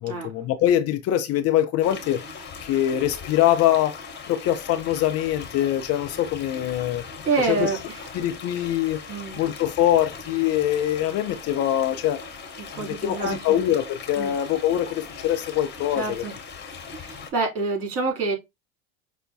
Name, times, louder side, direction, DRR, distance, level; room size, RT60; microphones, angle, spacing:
voice 1, 0.0-4.0 4.3-7.0 7.4-7.7 8.1-9.0 9.3-12.2 12.7-16.2, left 12 dB, 45° left, 0.5 m, -23 dB
sound 1, 1.8-17.3, left 5 dB, 30° left, 1.1 m, -39 dB
voice 2, 7.2-8.0 9.1-9.4 12.8-13.6 14.2-14.3 16.0-16.3 16.9-18.3, right 4 dB, 45° right, 2.5 m, -27 dB
5.5 x 2.1 x 2.6 m
hypercardioid pair, 85°, 33 cm